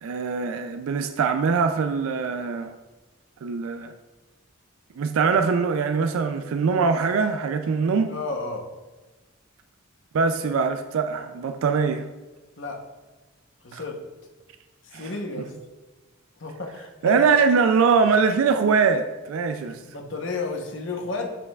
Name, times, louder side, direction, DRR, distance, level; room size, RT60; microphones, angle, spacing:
voice 1, 0.0-2.7 3.4-3.9 5.0-8.1 10.1-12.1 13.7-13.8 14.9-15.1 17.0-19.8, right 5 dB, 85° right, 8 dB, 0.4 m, -22 dB
voice 2, 8.1-8.7 12.6-12.8 13.6-14.0 14.8-15.5 16.4-17.2 19.6-21.4, left 3 dB, 60° left, 2 dB, 0.9 m, -32 dB
7.5 x 5.8 x 2.3 m, 1.2 s
head